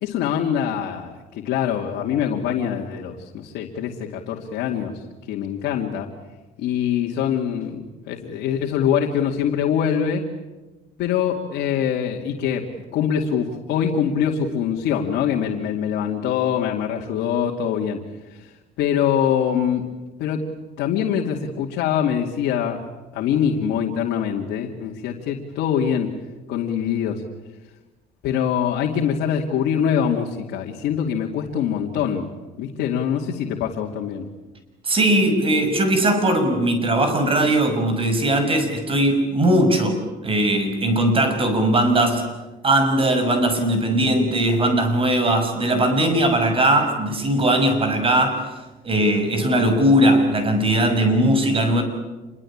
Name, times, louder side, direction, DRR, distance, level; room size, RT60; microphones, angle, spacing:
voice 1, 0.0-6.1 6.6-10.2 11.0-18.0 18.3-19.9 20.2-26.1 26.5-27.2 28.2-32.3 32.6-34.3, left 8 dB, 85° left, 0 dB, 2.5 m, -24 dB
voice 2, 34.8-42.2 42.6-48.4 48.8-51.8, right 1 dB, 30° right, 8 dB, 6.3 m, -19 dB
27.5 x 22.5 x 8.7 m, 1.2 s
cardioid pair, 110°, 17 cm